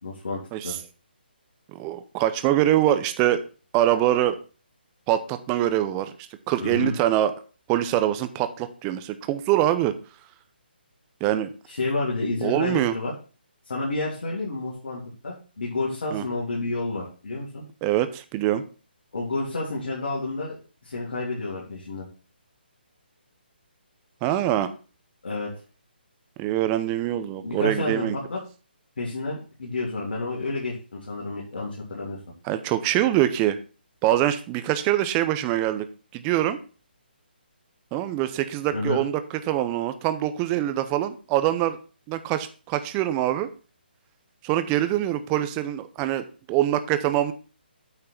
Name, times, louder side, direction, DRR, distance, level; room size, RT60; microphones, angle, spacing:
voice 1, 0.0-0.8 6.6-6.9 11.7-13.1 13.6-17.6 19.1-20.6 20.8-22.1 25.2-25.5 27.4-28.4 29.0-32.2 38.7-39.0, left 2 dB, 70° left, -5 dB, 3.3 m, -30 dB
voice 2, 1.7-3.4 3.7-4.4 5.1-6.1 6.5-7.3 7.7-9.9 11.2-11.5 12.4-12.9 16.1-16.2 17.8-18.6 24.2-24.7 26.4-28.2 32.4-33.6 34.0-35.9 36.1-36.6 37.9-39.2 39.5-41.8 42.1-43.5 44.4-47.3, right 13 dB, 20° right, 11 dB, 0.7 m, -24 dB
8.7 x 4.5 x 5.9 m, 0.37 s
figure-of-eight pair, 145°, 6 cm